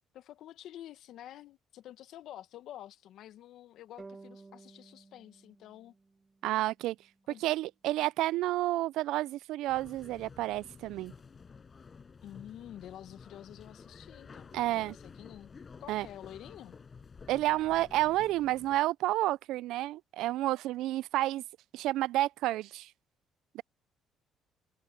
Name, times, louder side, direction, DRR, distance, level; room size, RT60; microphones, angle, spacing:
voice 1, 0.1-5.9 7.3-7.4 12.2-15.5 15.8-16.8, left 12 dB, 70° left, 1.5 m, -49 dB
sound 1, 4.0-7.2, right 3 dB, 25° right, 2.4 m, -54 dB
voice 2, 6.4-7.0 7.4-11.1 14.5-15.0 15.9-16.1 17.3-21.4 21.7-22.9 23.5-23.6, right 16 dB, 75° right, 0.4 m, -30 dB
sound 2, 9.7-18.8, left 5 dB, 40° left, 6.3 m, -52 dB
supercardioid pair, 70°, 0 cm